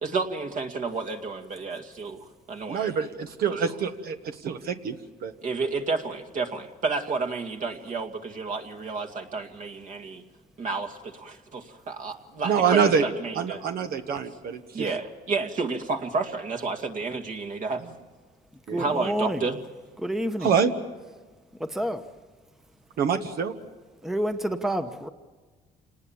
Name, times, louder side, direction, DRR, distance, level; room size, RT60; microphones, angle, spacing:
voice 1, 0.0-2.9 5.4-10.2 10.6-13.6 14.7-17.8 18.8-19.6, right 4 dB, 50° right, 2.2 m, -31 dB
voice 2, 2.7-5.0 5.2-5.3 12.4-13.0 13.3-14.9 18.7-18.8 20.4-20.7 23.0-23.5, right 6 dB, 65° right, 1.4 m, -25 dB
voice 3, 18.7-19.5 20.0-20.6 21.6-22.2 24.0-25.1, right 1 dB, ahead, 1.0 m, -29 dB
28.0 x 19.5 x 7.2 m
cardioid pair, 110°, 17 cm